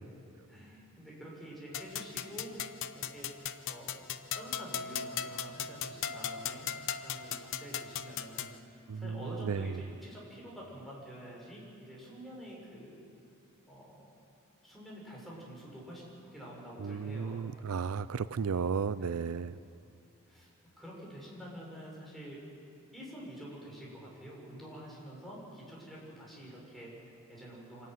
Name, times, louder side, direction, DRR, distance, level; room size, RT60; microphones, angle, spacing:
voice 1, 0.5-2.5 2.9-3.3 3.6-4.1 4.3-6.7 7.0-13.0 13.7-14.1 14.6-17.5 19.0-19.2 20.3-20.5 20.8-22.4 22.9-27.9, equal, ahead, -5 dB, 6.4 m, -47 dB
sound 1, 1.7-8.6, left 8 dB, 60° left, 0.8 m, -38 dB
voice 2, 16.8-19.6, right 5 dB, 70° right, 15 dB, 0.5 m, -34 dB
25.5 x 14.5 x 9.4 m, 2.5 s
head